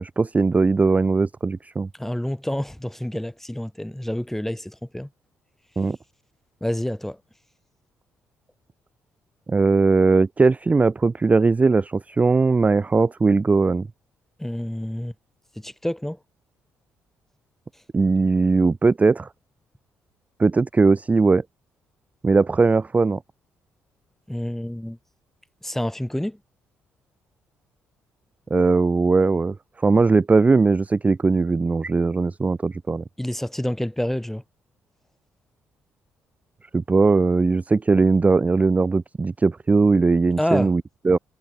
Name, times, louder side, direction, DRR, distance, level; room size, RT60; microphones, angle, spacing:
voice 1, 0.0-1.9 5.8-6.0 9.5-13.9 17.9-19.3 20.4-21.4 22.2-23.2 28.5-33.0 36.7-41.2, right 4 dB, 25° right, 0.4 m, -19 dB
voice 2, 2.0-5.1 6.6-7.2 14.4-15.1 15.6-16.2 24.3-25.0 25.6-26.4 33.2-34.4 40.4-40.7, left 1 dB, 5° left, 2.7 m, -28 dB
hypercardioid pair, 50°, 6 cm